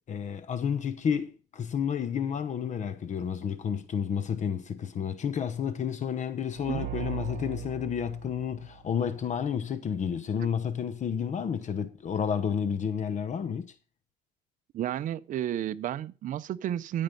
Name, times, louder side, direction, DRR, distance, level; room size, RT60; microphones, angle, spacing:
voice 1, 0.1-13.7, left 7 dB, 45° left, 1.0 m, -31 dB
sound 1, 6.5-9.3, right 13 dB, 80° right, 1.0 m, -39 dB
voice 2, 14.7-17.0, right 11 dB, 50° right, 0.5 m, -32 dB
13.5 x 5.3 x 5.3 m
cardioid pair, 110°, 17 cm